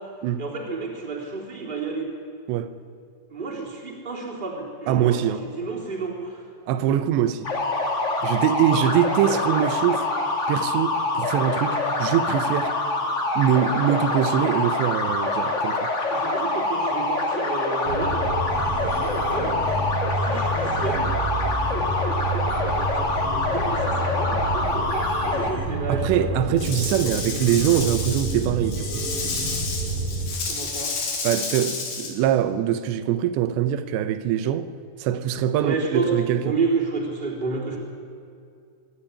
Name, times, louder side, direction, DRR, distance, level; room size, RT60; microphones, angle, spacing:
voice 1, 0.4-2.1 3.3-6.4 8.7-8.9 16.1-18.3 18.8-19.6 20.2-21.1 22.9-26.4 30.4-30.9 35.6-36.1 36.4-37.8, right 4 dB, 10° right, 3.3 m, -30 dB
voice 2, 4.9-5.4 6.7-7.5 8.2-10.1 10.5-12.7 13.4-15.9 25.9-29.0 31.2-34.7 35.0-36.6, right 10 dB, 85° right, 3.1 m, -23 dB
sound 1, 7.4-25.5, left 2 dB, 40° left, 1.0 m, -25 dB
sound 2, 17.8-30.4, right 2 dB, 40° right, 2.4 m, -29 dB
Rattle / Rattle (instrument), 26.6-32.1, left 4 dB, 70° left, 4.9 m, -30 dB
23.5 x 12.5 x 9.9 m
omnidirectional pair, 4.9 m